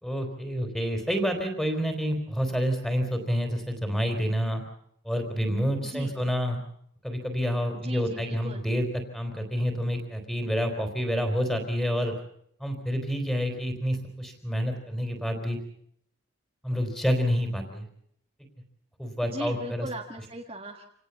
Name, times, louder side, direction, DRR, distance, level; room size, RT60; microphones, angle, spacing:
voice 1, 0.0-4.6 5.0-6.6 7.0-8.9 9.1-12.1 12.6-15.6 16.6-17.9 19.0-19.9, equal, 5° left, 5 dB, 3.9 m, -28 dB
voice 2, 5.8-6.2 7.7-8.6 19.2-20.8, right 1 dB, 25° right, 1 dB, 1.7 m, -38 dB
28.0 x 18.0 x 7.1 m, 0.69 s
head